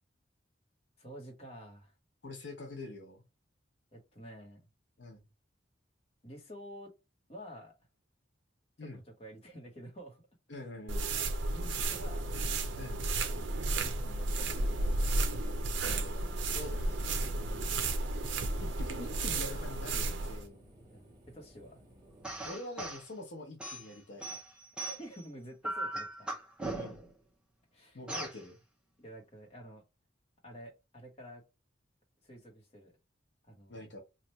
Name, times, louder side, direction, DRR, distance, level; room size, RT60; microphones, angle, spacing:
voice 1, 1.0-1.9 3.9-4.6 6.2-6.9 7.3-7.7 8.8-10.2 11.5-12.3 13.7-15.4 17.4-17.9 20.9-21.8 24.8-26.3 27.7-28.0 29.0-29.8 30.4-31.4 32.2-33.0 33.4-33.9, equal, 35° left, 1.1 m, -50 dB
voice 2, 2.2-3.2 5.0-5.2 8.8-9.0 10.5-11.1 12.8-13.0 15.8-17.0 18.6-20.6 22.4-24.4 26.7-27.0 27.9-28.6 33.7-34.0, left 2 dB, 70° left, 0.9 m, -45 dB
sound 1, 10.9-20.5, right 2 dB, 75° right, 0.6 m, -33 dB
diseño de ambiente Paraguaná, 11.7-22.5, equal, 20° right, 1.1 m, -57 dB
sound 2, 22.2-23.0 23.6-25.2 25.6-27.1 28.1-28.4, right 2 dB, 5° right, 0.7 m, -39 dB
3.2 x 2.4 x 4.1 m
head